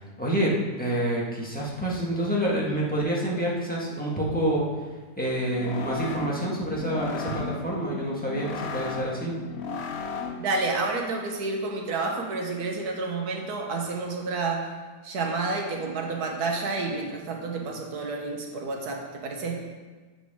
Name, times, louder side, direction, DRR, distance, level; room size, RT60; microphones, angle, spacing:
voice 1, 0.2-4.6 5.2-9.4, right 1 dB, 5° left, -5 dB, 1.5 m, -27 dB
sound 1, 5.3-10.6, left 4 dB, 55° left, 0.8 m, -36 dB
voice 2, 10.4-14.7 15.0-19.6, right 3 dB, 70° right, 1 dB, 1.7 m, -30 dB
14.0 x 5.0 x 3.7 m, 1.3 s
omnidirectional pair, 1.8 m